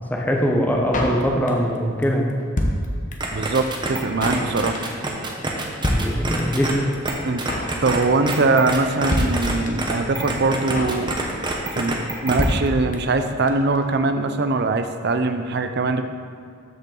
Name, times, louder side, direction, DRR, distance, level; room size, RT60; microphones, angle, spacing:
voice 1, 0.1-2.4 5.8-6.9, equal, 10° left, -1 dB, 0.9 m, -22 dB
Drum kit, 0.9-1.8 2.0-2.1 2.3-3.4 3.7-3.8 3.9-4.5 4.7-5.0 5.3-5.4 5.6-5.7 5.8-6.7 6.9-7.0 7.2-7.8 8.0-8.3 8.6-8.7 8.8-8.9 9.1-9.9 10.2-10.3 10.5-11.0 11.3-11.6 11.8-11.9 12.1-12.2 12.4-13.2 13.5-13.6 13.7-13.8, left 1 dB, 40° left, 0.9 m, -25 dB
sound 1, 3.2-6.7 7.0-7.1 7.4-8.0 8.3-9.5 9.8-12.4, right 2 dB, 20° right, 1.0 m, -26 dB
voice 2, 3.3-4.8 7.2-7.4 7.8-11.2 11.7-16.0, right 3 dB, 55° right, 8 dB, 0.6 m, -22 dB
13.0 x 5.4 x 3.9 m, 2.3 s
head